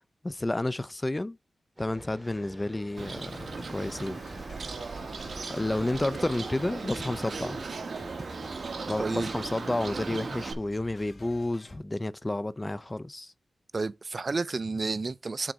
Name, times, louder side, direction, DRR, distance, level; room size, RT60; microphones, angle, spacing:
voice 1, 0.2-1.4 1.8-4.2 5.5-7.6 8.9-13.3, left 1 dB, 20° left, 0.4 m, -31 dB
sound 1, 1.8-7.1, right 1 dB, 15° right, 2.2 m, -49 dB
sound 2, 3.0-11.8, left 1 dB, 65° left, 2.4 m, -50 dB
Bird, 3.0-10.5, right 4 dB, 75° right, 1.1 m, -37 dB
voice 2, 9.0-9.3 13.7-15.5, right 3 dB, 50° right, 0.3 m, -31 dB
6.0 x 4.1 x 6.2 m
wide cardioid pair, 90°, 0 cm